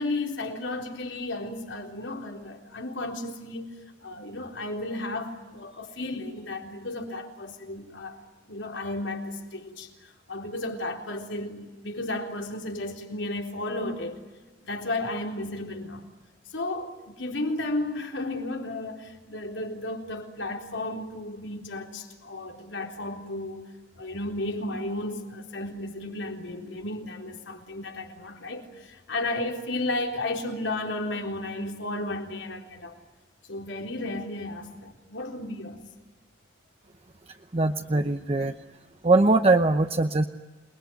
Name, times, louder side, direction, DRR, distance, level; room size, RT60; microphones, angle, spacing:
voice 1, 0.0-3.7 4.0-8.2 8.5-14.2 14.6-16.0 16.5-33.0 33.5-35.8, left 2 dB, 85° left, 3.9 m, -33 dB
voice 2, 37.5-38.5 39.0-40.2, right 2 dB, 35° right, 0.9 m, -21 dB
28.0 x 21.0 x 9.3 m
head